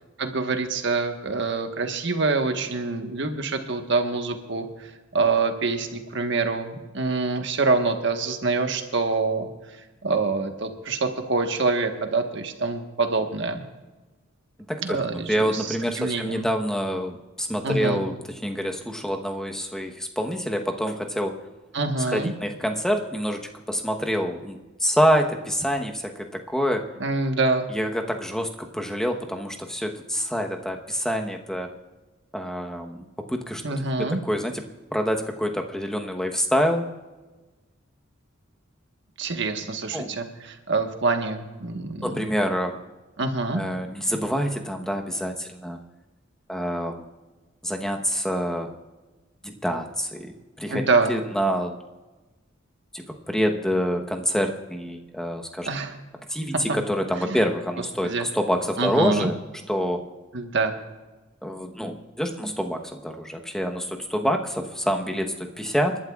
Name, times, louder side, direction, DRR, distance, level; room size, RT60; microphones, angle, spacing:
voice 1, 0.2-9.5 10.0-13.6 14.8-16.5 17.6-18.0 21.7-22.3 27.0-27.7 33.6-34.2 39.2-42.3 43.2-43.6 50.7-51.2 55.6-56.0 57.2-57.4 58.0-58.3 58.8-59.3 60.3-60.7, right 3 dB, 65° right, 5 dB, 1.4 m, -26 dB
voice 2, 15.3-18.2 18.4-21.4 22.0-26.8 27.7-31.7 32.3-34.6 34.9-36.9 39.9-40.1 42.0-42.8 43.5-45.8 46.5-47.0 47.6-48.7 49.4-51.7 52.9-55.7 56.3-59.3 59.7-60.0 61.4-66.0, equal, 5° left, 3 dB, 1.1 m, -26 dB
29.0 x 12.0 x 2.4 m, 1.2 s
head